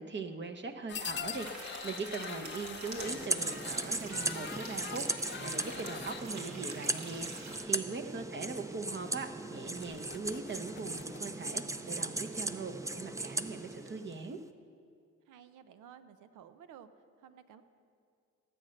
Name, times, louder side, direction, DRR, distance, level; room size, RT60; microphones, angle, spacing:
voice 1, 0.0-14.4, right 4 dB, 35° right, 6 dB, 1.0 m, -41 dB
sound 1, 0.9-6.3 7.1-7.6 8.0-8.2 8.6-8.7 9.1-9.2 9.6-11.2, left 7 dB, 35° left, 0.7 m, -44 dB
sound 2, 1.3-7.6, right 3 dB, 65° right, 2.1 m, -47 dB
sound 3, 3.0-14.3, right 2 dB, 10° right, 0.5 m, -38 dB
voice 2, 15.3-16.9 17.2-17.6, right 9 dB, 85° right, 11 dB, 0.8 m, -53 dB
16.0 x 7.8 x 6.5 m, 2.3 s
cardioid pair, 90°, 30 cm